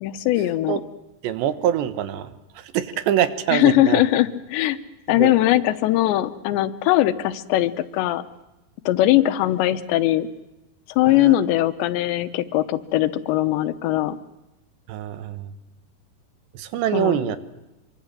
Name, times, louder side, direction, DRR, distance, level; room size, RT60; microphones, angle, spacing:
voice 1, 0.0-0.8 3.5-4.8 5.1-8.2 8.9-10.3 11.0-14.2 16.9-17.2, left 14 dB, 85° left, 13 dB, 3.3 m, -20 dB
voice 2, 1.2-4.0 5.2-5.3 11.1-11.3 14.9-15.5 16.6-17.4, right 10 dB, 85° right, 12 dB, 3.6 m, -24 dB
26.0 x 24.0 x 7.6 m, 0.98 s
omnidirectional pair, 4.9 m